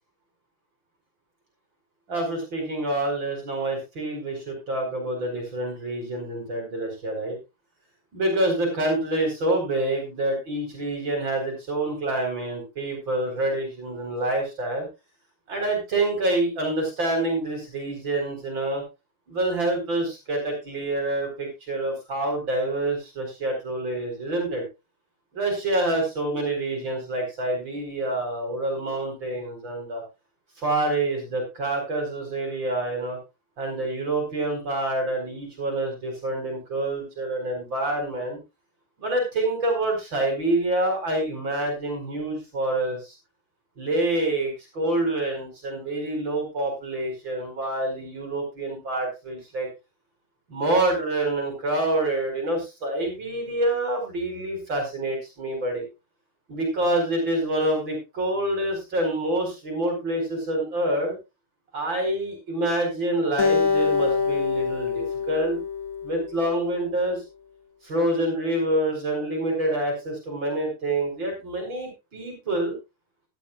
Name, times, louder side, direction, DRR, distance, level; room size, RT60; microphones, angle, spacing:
voice 1, 2.1-7.4 8.1-14.9 15.5-18.8 19.3-24.6 25.3-30.0 30.6-33.2 33.6-38.4 39.0-43.2 43.8-49.7 50.5-55.8 56.5-61.1 61.7-65.6 66.0-67.2 67.8-72.8, right 1 dB, 65° right, 2 dB, 5.2 m, -27 dB
Acoustic guitar, 63.4-66.7, left 5 dB, 40° left, 2.0 m, -25 dB
16.0 x 12.0 x 2.4 m, 0.26 s
omnidirectional pair, 2.3 m